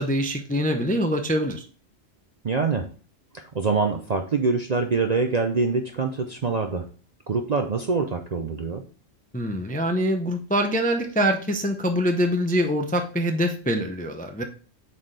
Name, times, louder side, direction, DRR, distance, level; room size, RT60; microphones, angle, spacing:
voice 1, 0.0-1.7 9.3-14.4, equal, 10° left, 5 dB, 0.4 m, -24 dB
voice 2, 2.4-2.9 3.3-6.9 7.3-8.8, right 4 dB, 45° right, 4 dB, 0.6 m, -25 dB
7.6 x 4.2 x 3.3 m, 0.39 s
omnidirectional pair, 1.3 m